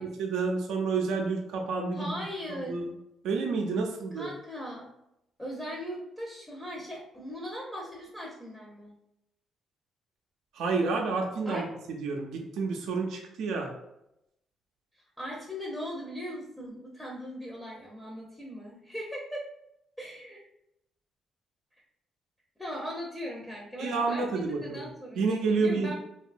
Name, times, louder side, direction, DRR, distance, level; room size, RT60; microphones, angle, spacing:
voice 1, 0.0-2.2 2.5-2.9 3.2-4.3 10.6-11.6 12.0-13.7 23.8-24.8 25.2-25.9, right 4 dB, 85° right, 1 dB, 0.4 m, -29 dB
voice 2, 1.9-2.7 4.1-4.9 5.4-9.0 11.4-11.7 14.9-19.4 20.0-20.4 22.6-25.9, equal, 10° left, -3 dB, 0.6 m, -39 dB
2.7 x 2.2 x 2.5 m, 0.83 s
cardioid pair, 90°, 0 cm